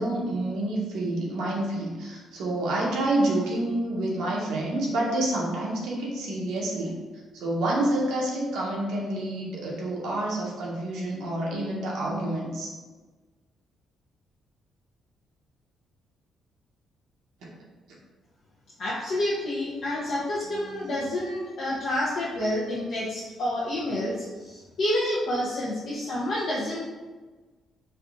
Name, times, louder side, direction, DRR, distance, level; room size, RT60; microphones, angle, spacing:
voice 1, 0.0-6.9 7.3-12.7, right 1 dB, 85° right, -3 dB, 0.8 m, -28 dB
voice 2, 18.8-26.8, left 1 dB, 65° left, -7 dB, 0.6 m, -29 dB
3.4 x 2.5 x 2.5 m, 1.3 s
cardioid pair, 90°, 0 cm